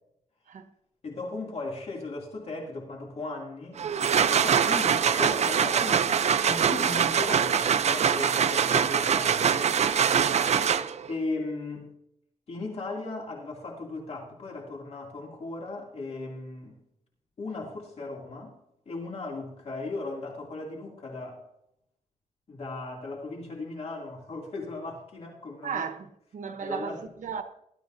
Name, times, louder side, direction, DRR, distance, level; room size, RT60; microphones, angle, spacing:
voice 1, 1.0-3.8 4.3-6.1 6.4-9.8 11.1-11.9 12.5-16.8 17.4-18.5 18.9-21.4 22.5-25.8 26.6-27.0, left 3 dB, 55° left, 2.6 m, -37 dB
sound 1, 3.8-11.1, right 7 dB, 60° right, 0.5 m, -23 dB
voice 2, 10.2-10.6 25.6-27.4, right 6 dB, 90° right, 1.1 m, -35 dB
19.5 x 12.5 x 2.7 m
wide cardioid pair, 140°, 13 cm